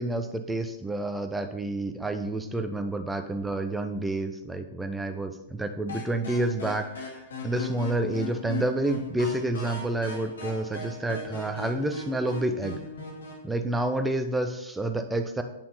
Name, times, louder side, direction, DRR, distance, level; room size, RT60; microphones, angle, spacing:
voice 1, 0.0-12.8 13.4-15.4, right 2 dB, 5° right, 7 dB, 0.9 m, -29 dB
sound 1, 5.9-13.4, left 3 dB, 65° left, 2.3 m, -38 dB
8.7 x 5.7 x 5.6 m, 0.87 s
figure-of-eight pair, 105°, 0 cm